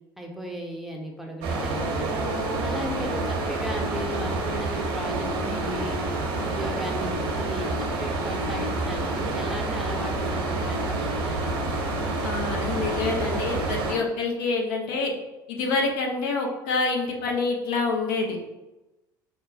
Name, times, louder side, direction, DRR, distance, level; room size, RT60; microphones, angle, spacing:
voice 1, 0.2-2.2 2.6-6.0 6.4-11.6, equal, ahead, 0 dB, 0.6 m, -36 dB
sound 1, 1.4-13.9, right 2 dB, 60° right, 0.8 m, -28 dB
voice 2, 12.2-15.1 15.5-18.4, left 3 dB, 60° left, 1 dB, 0.6 m, -27 dB
5.1 x 2.1 x 2.6 m, 1.0 s
figure-of-eight pair, 65°, 12 cm